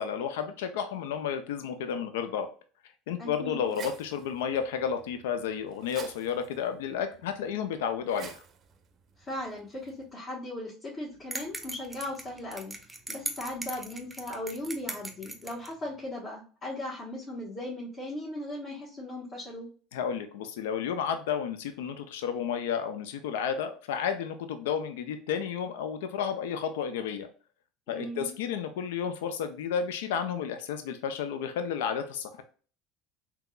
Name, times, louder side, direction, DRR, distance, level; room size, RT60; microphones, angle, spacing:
voice 1, 0.0-2.5 3.1-8.4 19.9-27.3 27.9-32.4, left 7 dB, 80° left, 8 dB, 0.4 m, -32 dB
voice 2, 3.2-3.7 9.2-12.7 13.1-19.7 27.9-28.3, left 1 dB, 40° left, -6 dB, 1.3 m, -38 dB
sound 1, 3.3-10.1, right 7 dB, 45° right, 0.5 m, -51 dB
sound 2, 11.3-15.7, right 1 dB, 10° right, 0.7 m, -39 dB
3.6 x 2.9 x 2.3 m, 0.39 s
hypercardioid pair, 85°, 0 cm